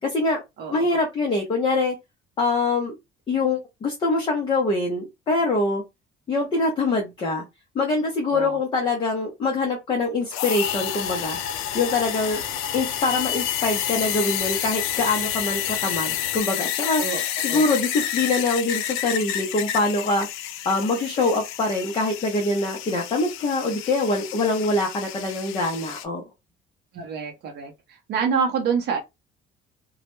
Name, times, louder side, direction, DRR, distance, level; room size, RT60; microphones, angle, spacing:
voice 1, 0.0-0.4 0.7-2.0 2.4-3.0 3.3-5.8 6.3-7.4 7.7-11.4 11.7-12.4 12.7-17.0 17.4-20.3 20.7-26.2, left 3 dB, 25° left, 0.5 m, -24 dB
sound 1, 10.3-26.0, left 11 dB, 80° left, 0.4 m, -29 dB
sound 2, 10.6-16.4, left 4 dB, 55° left, 0.9 m, -42 dB
voice 2, 12.2-12.6 17.0-17.2 17.5-17.6 26.9-27.7 28.1-29.0, right 6 dB, 55° right, 0.6 m, -27 dB
2.2 x 2.0 x 2.9 m
cardioid pair, 180°, 21 cm